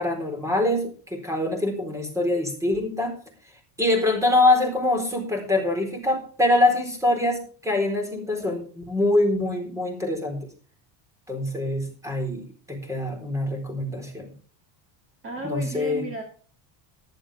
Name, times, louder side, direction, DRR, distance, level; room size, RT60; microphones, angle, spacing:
voice 1, 0.0-3.1 3.8-10.5 11.3-12.4 12.7-14.3 15.4-16.0, left 2 dB, 5° right, 5 dB, 4.2 m, -24 dB
voice 2, 15.2-16.2, right 2 dB, 25° right, 2 dB, 2.6 m, -33 dB
15.0 x 11.5 x 3.5 m, 0.41 s
cardioid pair, 150°, 49 cm